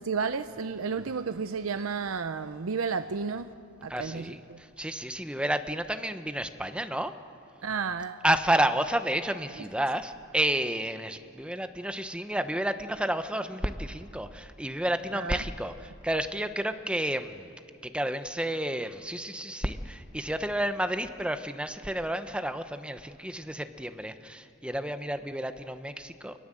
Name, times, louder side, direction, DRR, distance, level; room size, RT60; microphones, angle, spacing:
voice 1, 0.0-3.5 3.8-4.6 7.6-8.2 15.1-15.4, right 5 dB, 90° right, 10 dB, 0.7 m, -32 dB
voice 2, 3.9-7.1 8.2-17.5 17.8-26.3, right 1 dB, 5° right, 9 dB, 0.9 m, -31 dB
27.5 x 20.0 x 7.7 m, 2.5 s
head